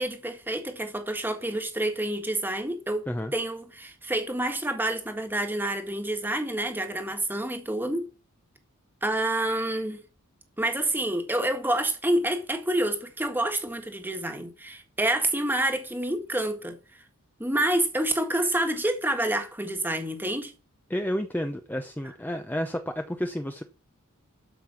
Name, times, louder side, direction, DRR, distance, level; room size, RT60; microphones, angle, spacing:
voice 1, 0.0-3.1 3.3-8.1 9.0-10.0 10.6-16.8 17.4-20.5, right 1 dB, 10° right, 1.6 m, -28 dB
voice 2, 20.9-23.6, equal, 10° left, 0.7 m, -31 dB
12.5 x 5.5 x 6.0 m
head